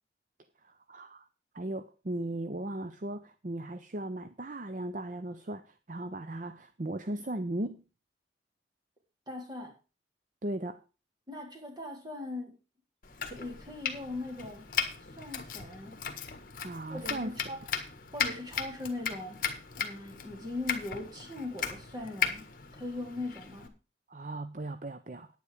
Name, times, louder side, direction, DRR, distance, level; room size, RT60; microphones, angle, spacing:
voice 1, 0.6-1.3 1.5-7.8 10.4-10.8 16.6-17.3 24.1-25.3, right 1 dB, 45° right, 11 dB, 0.6 m, -37 dB
voice 2, 9.3-9.8 11.3-12.6 13.2-14.6 15.1-15.9 16.9-17.6 18.1-19.4 19.7-22.4 22.7-23.7, left 2 dB, 20° right, 1 dB, 3.4 m, -40 dB
Domestic sounds home sounds, 13.0-23.7, left 7 dB, 45° left, 1.6 m, -37 dB
9.9 x 9.4 x 4.9 m, 0.32 s
head